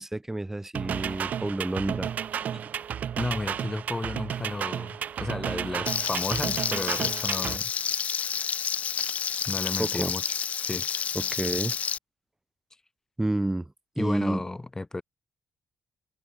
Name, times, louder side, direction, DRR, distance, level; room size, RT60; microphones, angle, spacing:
voice 1, 0.0-2.1 2.5-2.7 9.8-10.1 11.1-11.8 13.2-14.5, right 1 dB, 10° right, 2.9 m, -30 dB
sound 1, 0.7-7.6, right 8 dB, 60° right, 0.8 m, -32 dB
voice 2, 3.2-7.7 9.5-10.9 14.0-15.0, left 2 dB, 20° left, 6.4 m, -33 dB
Frying (food), 5.9-12.0, left 7 dB, 50° left, 0.3 m, -29 dB
cardioid pair, 75°, 3 cm